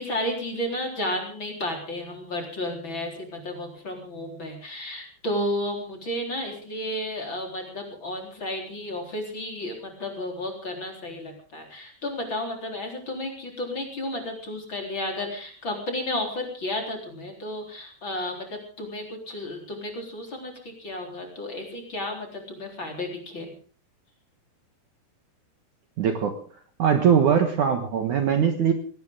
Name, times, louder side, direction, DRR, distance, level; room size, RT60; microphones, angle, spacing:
voice 1, 0.0-23.5, left 1 dB, 30° left, 2 dB, 4.4 m, -32 dB
voice 2, 26.0-26.3 26.8-28.7, right 7 dB, 60° right, 6 dB, 2.4 m, -21 dB
20.5 x 18.0 x 3.8 m, 0.41 s
omnidirectional pair, 4.7 m